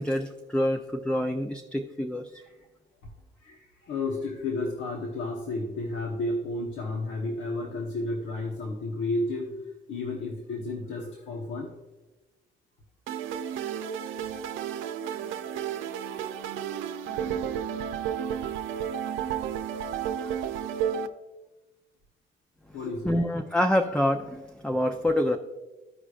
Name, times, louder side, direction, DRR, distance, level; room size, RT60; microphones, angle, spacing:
voice 1, 0.0-2.3 23.0-25.4, left 1 dB, 5° left, 4 dB, 0.5 m, -26 dB
voice 2, 3.4-9.5 9.9-11.7 15.0-15.4 20.0-20.4 22.7-23.2, left 2 dB, 75° left, 0 dB, 1.1 m, -32 dB
sound 1, 13.1-21.1, right 9 dB, 90° right, 0.6 m, -32 dB
14.5 x 4.9 x 2.4 m, 1.1 s
cardioid pair, 90°, 20 cm